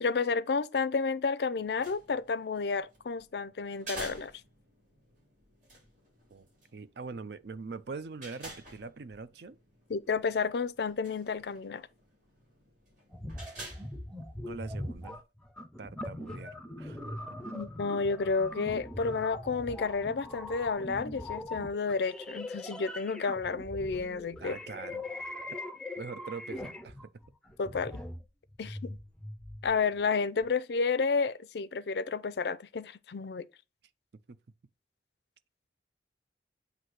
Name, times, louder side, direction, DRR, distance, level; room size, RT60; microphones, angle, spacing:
voice 1, 0.0-4.3 9.9-11.9 17.5-24.6 27.6-28.0 28.6-29.0 29.6-33.5, left 4 dB, 60° left, 0.4 m, -31 dB
sound 1, 1.5-15.0, right 1 dB, 45° right, 3.0 m, -51 dB
voice 2, 6.3-9.6 14.4-15.2 15.8-17.4 24.4-25.4 26.0-27.0 34.3-34.4, right 4 dB, 65° right, 0.5 m, -43 dB
sound 2, 13.1-29.8 30.4-30.5, left 1 dB, 5° left, 0.5 m, -41 dB
7.9 x 2.7 x 5.9 m
head